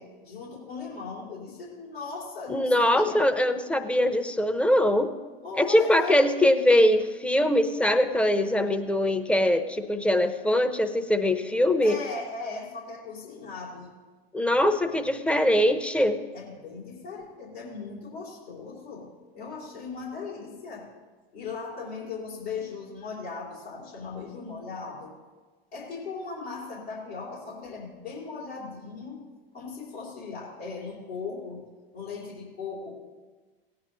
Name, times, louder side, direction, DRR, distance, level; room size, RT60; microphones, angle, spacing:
voice 1, 0.0-3.2 5.4-6.2 11.8-13.9 16.3-19.1 19.3-20.9 21.3-25.1 25.7-29.2 29.5-31.6 31.9-32.9, left 4 dB, 80° left, -6 dB, 3.3 m, -38 dB
voice 2, 2.5-5.1 5.6-12.0 14.3-16.2, left 1 dB, 5° left, 8 dB, 0.7 m, -22 dB
17.5 x 9.4 x 3.0 m, 1.3 s
figure-of-eight pair, 80°, 30 cm